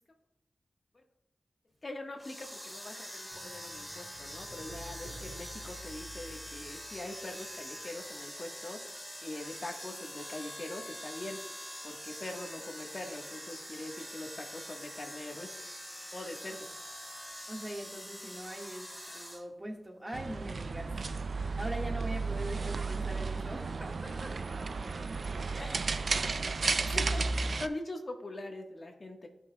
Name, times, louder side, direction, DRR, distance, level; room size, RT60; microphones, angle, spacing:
voice 1, 1.8-8.8 9.2-11.4 11.8-15.5 16.1-16.6 26.9-29.3, left 2 dB, 45° left, 3 dB, 1.4 m, -43 dB
sound 1, 2.2-19.4, equal, 10° left, 2.5 m, -45 dB
sound 2, 3.3-7.8 8.0-8.1, right 1 dB, 85° right, 3.1 m, -50 dB
voice 2, 17.5-20.9 21.3-24.7 25.5-25.9, right 1 dB, 20° right, 1 dB, 1.7 m, -42 dB
sound 3, 20.1-27.7, right 4 dB, 70° right, 0.4 m, -33 dB
16.5 x 5.8 x 2.3 m, 0.85 s
wide cardioid pair, 75°, 0 cm